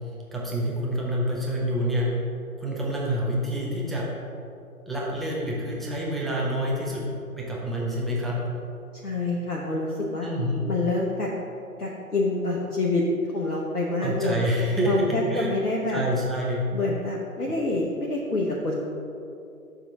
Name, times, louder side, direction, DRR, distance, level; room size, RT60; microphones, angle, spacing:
voice 1, 0.3-2.1 2.6-4.0 4.9-7.1 7.4-8.4 10.2-10.6 14.0-15.5 15.9-16.6 17.5-17.6, equal, ahead, -5 dB, 0.3 m, -27 dB
voice 2, 9.0-10.3 10.7-11.3 11.8-13.0 13.3-14.4 14.8-16.0 16.7-18.8, left 2 dB, 85° left, -3 dB, 1.0 m, -27 dB
6.9 x 3.6 x 5.8 m, 2.6 s
figure-of-eight pair, 140°, 45 cm